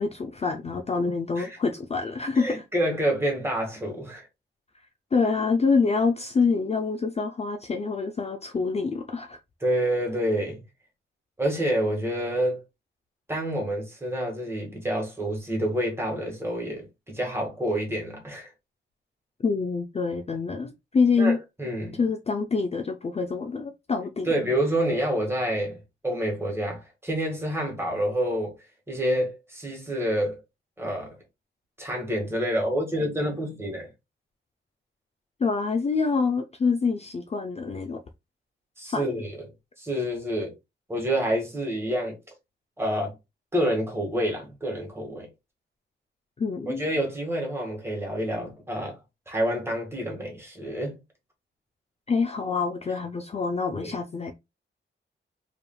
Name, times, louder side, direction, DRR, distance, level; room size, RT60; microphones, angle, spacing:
voice 1, 0.0-2.6 5.1-9.4 19.4-21.4 22.0-24.3 35.4-38.0 38.9-39.1 46.4-46.8 52.1-54.3, left 4 dB, 30° left, 0.4 m, -26 dB
voice 2, 2.3-4.3 9.6-10.6 11.4-12.6 13.3-18.5 21.2-22.0 24.2-25.8 26.0-28.5 28.9-30.4 30.8-31.2 31.8-33.9 38.8-39.4 39.8-40.5 40.9-42.2 42.8-43.1 43.5-45.3 46.7-48.9 49.3-51.0 53.8-54.0, right 1 dB, 10° right, 1.6 m, -28 dB
4.8 x 3.3 x 2.3 m
wide cardioid pair, 170°, 20 cm